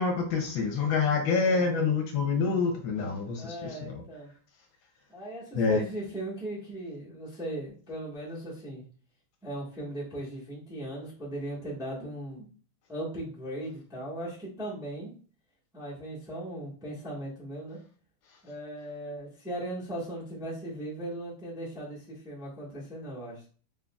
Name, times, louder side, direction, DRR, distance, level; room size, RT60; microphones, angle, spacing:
voice 1, 0.0-4.0 5.5-5.8, left 5 dB, 75° left, 4 dB, 1.4 m, -27 dB
voice 2, 1.4-1.7 3.3-4.3 5.1-8.8 9.4-12.5 12.9-15.1 15.7-17.8 18.4-23.5, right 1 dB, 5° right, -6 dB, 0.8 m, -38 dB
3.8 x 3.7 x 2.2 m, 0.40 s
omnidirectional pair, 2.3 m